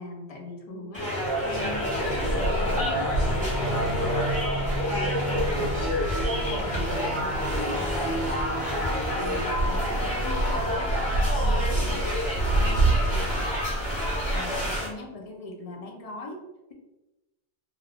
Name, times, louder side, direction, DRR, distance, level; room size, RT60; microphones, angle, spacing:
voice 1, 0.0-4.4 4.9-6.1 6.5-12.0 12.6-13.6 14.3-16.4, left 2 dB, 50° left, 1 dB, 0.4 m, -40 dB
sound 1, 0.9-14.9, equal, 10° right, 1.0 m, -29 dB
sound 2, 1.2-12.6, right 1 dB, 85° left, 0.9 m, -36 dB
sound 3, 2.0-14.8, right 2 dB, 65° right, 0.7 m, -29 dB
2.3 x 2.2 x 3.3 m, 0.99 s
omnidirectional pair, 1.1 m